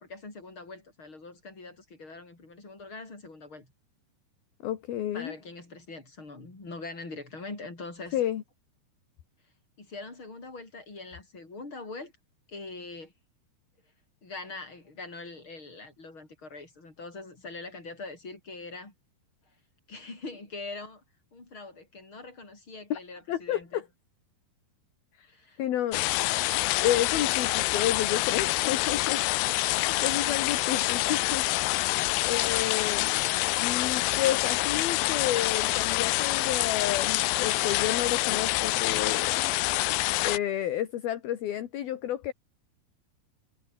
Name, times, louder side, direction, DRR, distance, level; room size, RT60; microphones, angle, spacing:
voice 1, 0.0-3.7 5.1-8.2 9.8-12.1 12.5-13.1 14.2-18.9 19.9-21.0 21.3-23.8 25.2-25.6 29.8-31.2, left 3 dB, 30° left, 7.7 m, -43 dB
voice 2, 4.6-5.3 8.1-8.4 22.9-23.0 23.3-23.9 25.2-25.3 25.6-26.0 26.8-29.2 29.7-31.5 32.2-33.1 33.6-39.5 40.2-42.3, left 11 dB, 65° left, 3.5 m, -31 dB
sound 1, 25.9-40.4, left 20 dB, 85° left, 2.7 m, -26 dB
omnidirectional pair, 4.9 m